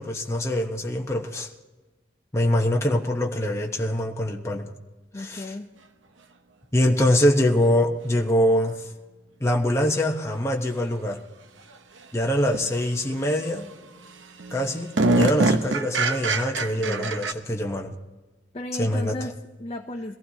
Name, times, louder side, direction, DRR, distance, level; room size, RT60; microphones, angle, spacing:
voice 1, 0.0-1.5 2.3-4.7 5.1-5.5 6.7-8.9 9.4-11.2 12.1-13.7 14.5-17.9 18.8-19.2, left 1 dB, 15° left, 0 dB, 1.0 m, -24 dB
voice 2, 5.1-5.7 16.8-17.1 18.5-20.2, left 1 dB, 30° left, 3 dB, 0.6 m, -34 dB
sound 1, 9.7-9.8 12.5-12.7 13.1-13.6 14.0-14.1 14.4-17.3, right 2 dB, 85° right, 0.8 m, -24 dB
22.0 x 15.5 x 2.8 m, 1.2 s
head